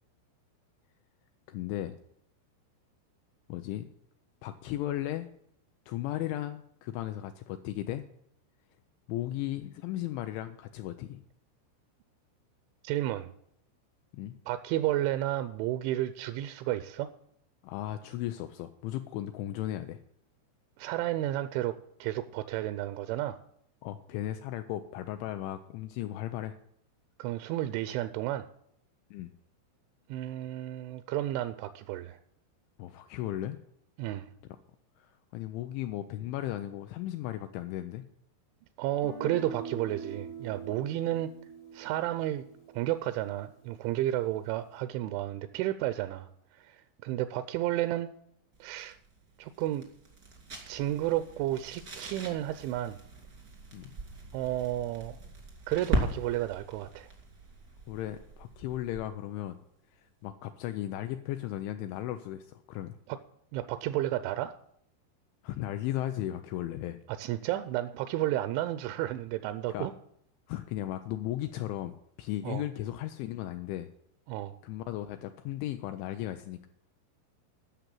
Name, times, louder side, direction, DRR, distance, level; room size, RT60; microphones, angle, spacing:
voice 1, 1.5-1.9 3.5-3.9 4.4-5.3 5.9-8.0 9.1-11.2 14.1-14.3 17.6-20.0 23.8-26.6 29.1-29.3 32.8-33.6 35.0-38.0 53.7-53.9 57.9-59.6 60.0-63.0 65.4-67.0 69.7-69.9 70.5-73.9 74.6-76.7, left 13 dB, 85° left, 8 dB, 2.7 m, -36 dB
voice 2, 12.8-13.3 14.5-17.1 20.8-21.8 22.0-23.4 27.2-28.5 30.1-32.2 34.0-34.3 38.8-41.3 41.7-42.5 42.7-46.3 46.6-48.1 48.6-49.0 49.4-49.9 50.7-53.0 54.3-55.2 55.7-57.1 63.1-63.2 63.5-64.5 67.1-69.9 72.4-72.6 74.3-74.6, right 14 dB, 85° right, 11 dB, 2.7 m, -32 dB
Guitar, 39.0-43.0, right 4 dB, 60° left, 1.9 m, -43 dB
sound 1, 48.5-59.2, right 2 dB, 50° right, 1.0 m, -39 dB
12.0 x 6.5 x 7.7 m, 0.72 s
omnidirectional pair, 5.8 m